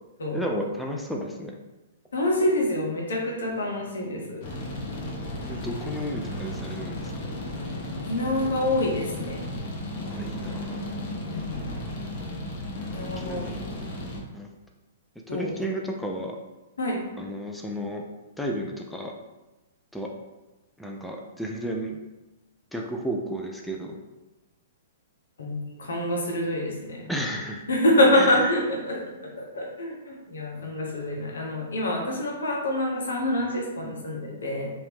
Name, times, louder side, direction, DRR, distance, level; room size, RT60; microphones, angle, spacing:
voice 1, 0.3-1.6 5.5-7.1 10.0-10.8 13.2-13.6 14.3-14.5 15.3-16.4 17.2-18.1 18.4-19.1 19.9-20.1 20.8-22.0 22.7-24.0 27.1-27.6 28.1-28.5, equal, ahead, 0 dB, 0.4 m, -32 dB
voice 2, 2.1-4.4 8.1-9.5 11.3-11.7 12.9-13.5 15.3-15.5 16.8-17.0 25.4-27.1 27.7-29.0 29.4-34.7, left 1 dB, 80° left, -1 dB, 0.9 m, -26 dB
sound 1, 4.4-14.2, left 1 dB, 45° left, 0.8 m, -34 dB
2.8 x 2.6 x 3.5 m, 1.1 s
hypercardioid pair, 120°, 0 cm